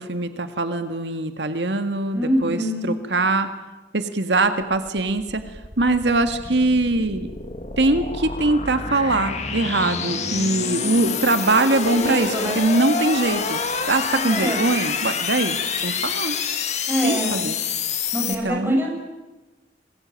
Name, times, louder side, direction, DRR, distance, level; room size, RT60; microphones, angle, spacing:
voice 1, 0.0-3.5 3.9-5.4 5.8-7.3 7.8-15.6 15.8-16.4 17.0-17.6 18.3-18.8, right 2 dB, 85° right, 9 dB, 2.0 m, -22 dB
voice 2, 2.1-2.9 11.8-12.6 14.1-14.6 16.9-17.4 18.1-18.9, equal, 10° right, 1 dB, 6.8 m, -25 dB
sound 1, 4.6-18.4, left 5 dB, 40° left, 2.6 m, -27 dB
26.5 x 21.5 x 9.2 m, 1.1 s
head